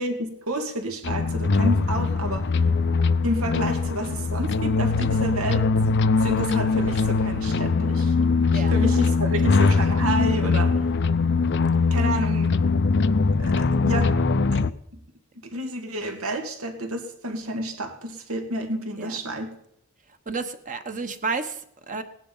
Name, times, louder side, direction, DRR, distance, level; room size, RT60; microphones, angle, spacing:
voice 1, 0.0-2.4 3.2-5.7 6.2-8.1 8.5-10.8 11.9-12.5 13.4-14.2 14.5-14.6 15.4-19.5, right 1 dB, 85° right, 5 dB, 2.4 m, -30 dB
sound 1, 1.0-14.7, left 4 dB, 55° left, 0.6 m, -22 dB
voice 2, 20.3-22.0, right 4 dB, 40° right, 8 dB, 1.3 m, -31 dB
18.0 x 10.5 x 5.6 m, 0.75 s
head